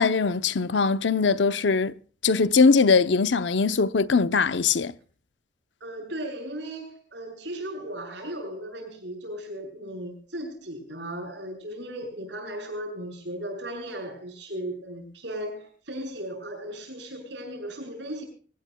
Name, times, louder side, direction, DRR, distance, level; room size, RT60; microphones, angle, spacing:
voice 1, 0.0-1.9 2.2-4.9, left 4 dB, 80° left, 0.7 m, -21 dB
voice 2, 5.8-18.2, right 1 dB, 75° right, 7.5 m, -36 dB
24.5 x 18.5 x 2.2 m
head